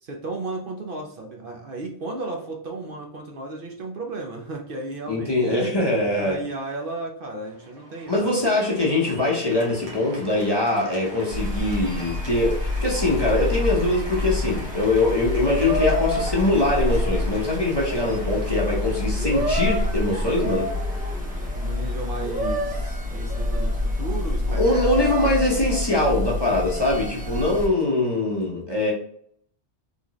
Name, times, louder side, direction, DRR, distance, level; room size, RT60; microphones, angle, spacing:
voice 1, 0.0-5.8 6.2-8.4 21.5-25.1, right 3 dB, 55° right, 1 dB, 0.9 m, -34 dB
voice 2, 5.1-6.4 8.1-20.7 24.5-28.9, left 2 dB, 25° left, -3 dB, 0.9 m, -22 dB
Cheering / Applause, 7.5-26.7, right 1 dB, 75° right, 1.4 m, -43 dB
sound 1, 11.3-27.7, left 1 dB, 10° right, 0.4 m, -27 dB
3.7 x 3.7 x 3.0 m, 0.65 s
omnidirectional pair, 1.1 m